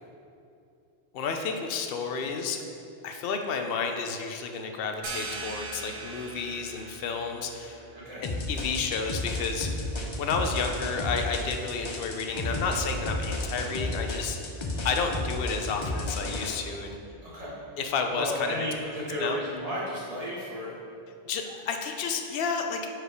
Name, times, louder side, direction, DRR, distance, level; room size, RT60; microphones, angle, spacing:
voice 1, 1.1-2.6 3.0-7.8 8.2-9.9 10.2-14.5 14.8-17.0 17.8-18.7 19.2-19.4 21.3-22.8, left 5 dB, 70° left, 4 dB, 0.8 m, -31 dB
sound 1, 5.0-10.4, right 3 dB, 60° right, 0.8 m, -42 dB
sound 2, 8.2-16.5, left 1 dB, 35° left, 0.5 m, -32 dB
voice 2, 17.2-17.5 18.1-20.7, equal, 35° right, -7 dB, 1.7 m, -33 dB
4.8 x 4.6 x 5.0 m, 2.6 s
omnidirectional pair, 1.0 m